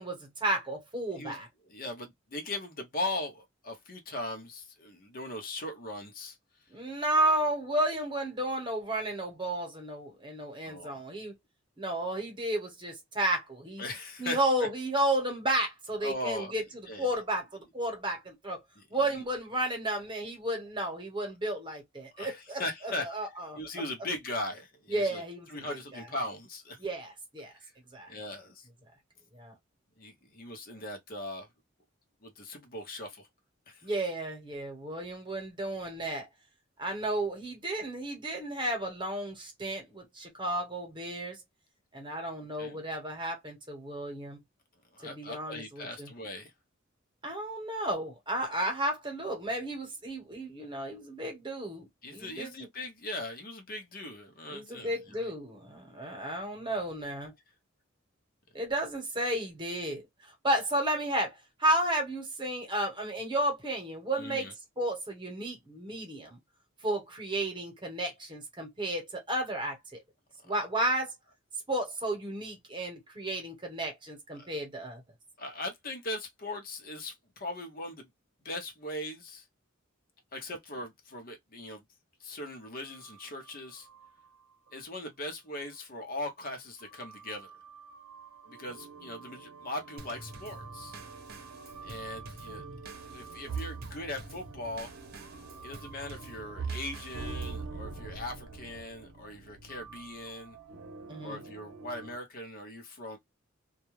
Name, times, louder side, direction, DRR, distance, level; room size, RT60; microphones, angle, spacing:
voice 1, 0.0-1.5 6.7-11.3 11.8-13.8 14.2-16.6 17.0-18.6 18.9-22.6 23.0-23.6 24.9-26.0 26.8-27.5 27.9-28.1 29.3-29.5 33.8-36.3 36.8-41.4 41.9-44.4 45.0-46.1 47.2-52.5 54.5-57.3 58.5-66.4 66.8-70.0 70.4-71.1 71.7-75.0 92.5-92.8 101.1-101.4, right 1 dB, 25° right, 1.0 m, -33 dB
voice 2, 1.6-6.4 10.6-11.0 13.8-14.7 16.0-16.5 16.9-17.1 18.8-19.2 22.1-23.1 23.5-25.2 25.5-26.8 27.5-27.7 28.1-28.7 30.0-31.5 32.2-33.3 33.7-33.9 42.6-42.8 44.9-46.5 52.0-55.3 64.1-64.5 70.5-70.9 74.3-74.6 75.4-78.1 78.4-79.5 80.3-81.8 82.2-83.9 84.7-87.5 88.5-91.0 91.8-92.6 93.1-94.9 95.6-100.6 101.2-103.2, left 1 dB, 45° left, 0.7 m, -39 dB
sound 1, 82.8-84.4 84.7-84.8 85.6-85.7 86.8-102.2, right 4 dB, 90° right, 0.7 m, -44 dB
Drum kit / Snare drum / Bass drum, 90.0-97.7, right 2 dB, 50° right, 0.8 m, -49 dB
2.3 x 2.1 x 3.0 m
head